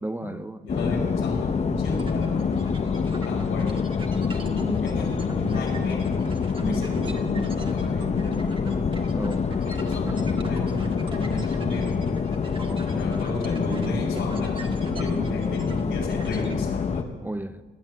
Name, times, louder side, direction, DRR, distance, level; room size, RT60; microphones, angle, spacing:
voice 1, 0.0-1.0 6.6-6.9 9.1-10.2 12.6-13.1 17.2-17.6, right 2 dB, 10° right, 0.6 m, -35 dB
voice 2, 0.6-6.3 6.6-8.8 9.6-12.2 12.9-17.1, left 2 dB, 85° left, 4.9 m, -33 dB
sound 1, 0.7-17.0, left 5 dB, 35° left, 0.8 m, -26 dB
sound 2, 1.9-16.6, right 3 dB, 25° right, 1.7 m, -43 dB
18.0 x 8.7 x 7.5 m
cardioid pair, 90°, 20 cm